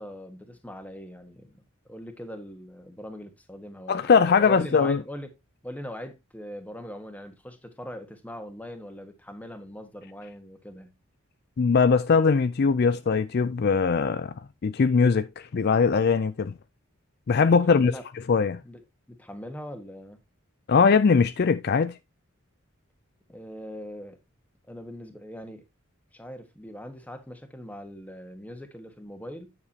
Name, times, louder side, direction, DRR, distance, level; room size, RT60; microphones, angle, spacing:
voice 1, 0.0-5.4 5.6-10.9 17.4-18.0 18.6-20.2 23.3-24.2 24.7-25.6 26.1-29.5, equal, 5° left, 1.3 m, -41 dB
voice 2, 3.9-5.0 11.6-14.3 14.6-16.5 17.3-17.9 18.3-18.6 20.7-21.9, left 5 dB, 50° left, 0.4 m, -21 dB
9.7 x 7.0 x 2.8 m
head